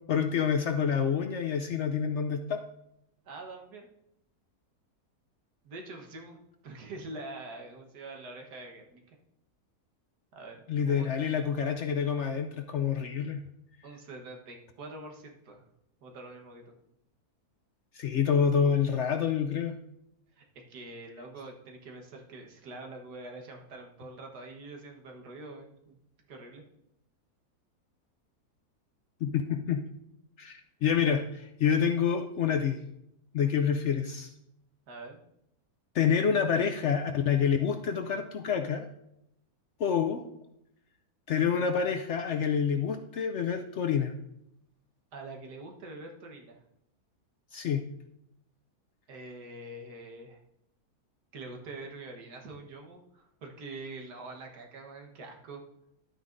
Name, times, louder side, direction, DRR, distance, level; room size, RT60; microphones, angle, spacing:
voice 1, 0.1-2.6 10.7-13.4 17.9-19.8 29.2-29.8 30.4-32.8 33.3-34.3 35.9-38.9 39.8-40.2 41.3-44.1 47.5-47.8, left 7 dB, 70° left, 5 dB, 0.7 m, -27 dB
voice 2, 3.3-3.9 5.6-9.2 10.3-11.2 13.8-15.6 16.0-16.8 20.4-20.5 20.7-26.0 26.3-26.6 34.9-35.2 45.1-46.6 49.1-50.4 51.3-55.6, right 2 dB, 90° right, 1 dB, 1.8 m, -45 dB
11.5 x 9.0 x 2.6 m, 0.81 s
omnidirectional pair, 1.7 m